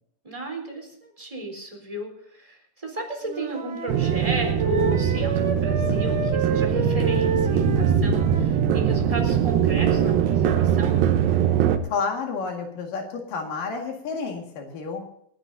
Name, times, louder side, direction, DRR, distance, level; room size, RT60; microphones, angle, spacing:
voice 1, 0.2-11.1, right 1 dB, 10° right, 2 dB, 3.6 m, -34 dB
Wind instrument woodwind instrument, 3.2-8.9, right 4 dB, 70° right, 3.8 m, -30 dB
sound 1, 3.9-11.8, right 8 dB, 85° right, 2.8 m, -22 dB
voice 2, 11.8-15.0, left 5 dB, 75° left, 2 dB, 3.6 m, -30 dB
28.5 x 10.5 x 2.7 m, 0.70 s
omnidirectional pair, 3.9 m